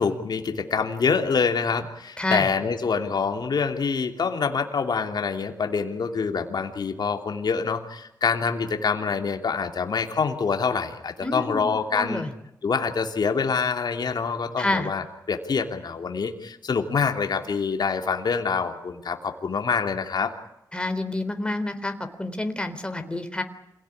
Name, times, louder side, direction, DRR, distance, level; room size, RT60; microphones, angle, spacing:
voice 1, 0.0-12.2 12.6-20.3, left 5 dB, 65° left, 4 dB, 2.9 m, -26 dB
voice 2, 2.2-2.5 11.2-11.6 11.9-12.3 14.6-14.9 20.7-23.4, left 2 dB, 15° left, 7 dB, 3.7 m, -28 dB
27.5 x 18.0 x 9.9 m, 0.84 s
cardioid pair, 70°, 8 cm